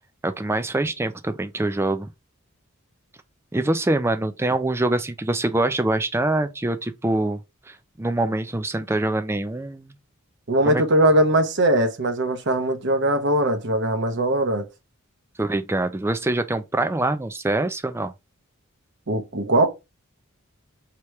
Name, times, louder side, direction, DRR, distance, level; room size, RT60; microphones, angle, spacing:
voice 1, 0.2-2.1 3.5-7.4 7.7-10.0 10.6-10.8 15.4-18.1, right 2 dB, 10° right, 0.4 m, -24 dB
voice 2, 10.5-14.7 19.1-19.7, right 1 dB, 55° right, 0.9 m, -20 dB
3.2 x 2.9 x 4.6 m
head